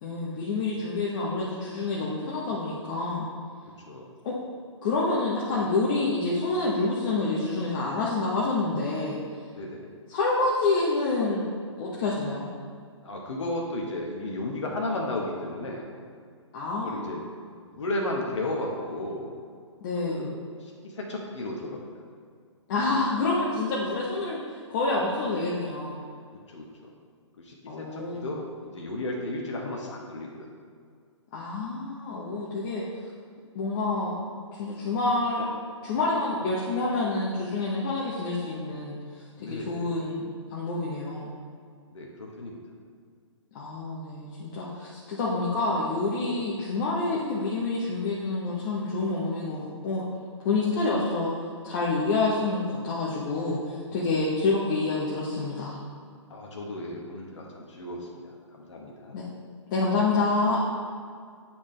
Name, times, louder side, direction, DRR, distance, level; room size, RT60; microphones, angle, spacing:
voice 1, 0.0-3.3 4.2-4.4 4.8-9.2 10.1-11.4 11.8-12.5 16.5-17.1 19.8-20.3 22.7-26.0 27.7-28.3 31.3-32.8 33.5-34.2 34.6-35.5 35.8-39.0 39.4-41.3 43.5-50.0 50.4-51.3 51.6-55.8 59.1-59.2 59.7-60.6, left 3 dB, 40° left, -6 dB, 1.0 m, -27 dB
voice 2, 9.5-9.8 13.0-15.9 16.8-17.2 17.6-19.3 20.1-21.8 26.5-26.9 27.4-30.4 39.4-40.0 41.9-42.6 56.3-59.2, left 1 dB, 70° left, -1 dB, 1.2 m, -34 dB
8.5 x 4.4 x 3.2 m, 2.1 s
hypercardioid pair, 140°, 16 cm